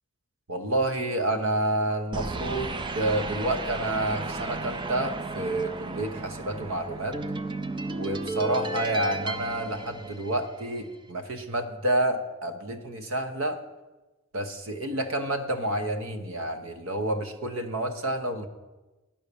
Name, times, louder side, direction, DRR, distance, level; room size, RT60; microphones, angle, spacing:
voice 1, 0.5-7.2 8.0-13.6 14.3-18.5, right 1 dB, 60° right, 7 dB, 0.9 m, -29 dB
sound 1, 2.1-10.7, right 3 dB, 20° right, 0.4 m, -34 dB
10.5 x 5.6 x 6.8 m, 1.1 s
head